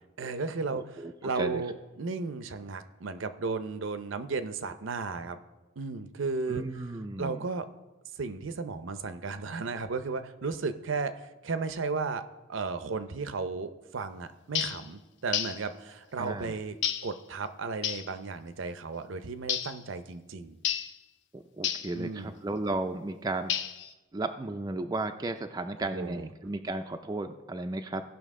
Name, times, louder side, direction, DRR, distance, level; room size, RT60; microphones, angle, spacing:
voice 1, 0.2-5.4 5.8-6.6 7.2-7.7 8.2-12.2 12.5-16.8 17.0-20.6 21.9-22.3 25.9-26.3, right 4 dB, 65° right, 11 dB, 0.6 m, -34 dB
voice 2, 0.7-1.6 6.5-7.5 16.2-16.5 21.3-23.5 24.1-28.0, right 2 dB, 20° right, 6 dB, 0.4 m, -34 dB
sound 1, 14.5-14.8 15.3-15.6 16.8-17.1 17.8-18.1 19.5-19.8 20.6-20.9 21.6-21.9 23.5-23.9, left 9 dB, 60° left, 0.6 m, -31 dB
16.5 x 5.8 x 3.6 m, 1.1 s
head